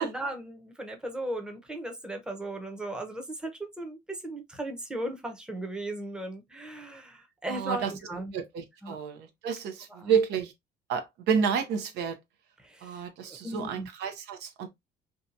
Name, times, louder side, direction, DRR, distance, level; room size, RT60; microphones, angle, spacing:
voice 1, 0.0-8.3 8.8-9.0 9.9-10.2 12.6-13.0 13.4-13.9, right 1 dB, 5° right, 0.7 m, -37 dB
voice 2, 7.5-7.9 8.3-10.5 10.9-12.2 12.8-14.7, right 6 dB, 80° right, 0.6 m, -30 dB
2.7 x 2.2 x 2.5 m
cardioid pair, 110°, 17 cm